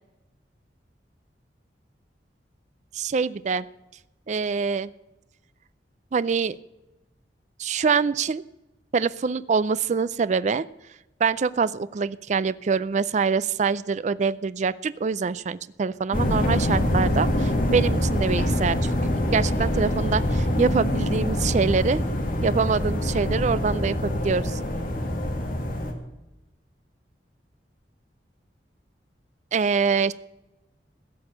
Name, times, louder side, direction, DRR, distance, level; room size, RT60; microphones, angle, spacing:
voice 1, 2.9-3.7 4.3-4.9 6.1-6.6 7.6-8.4 8.9-10.7 11.2-22.0 22.4-24.6 29.5-30.1, right 5 dB, 40° right, 17 dB, 0.4 m, -25 dB
sound 1, 16.1-25.9, left 1 dB, 50° left, 2.0 m, -25 dB
16.0 x 6.3 x 8.2 m, 0.99 s
head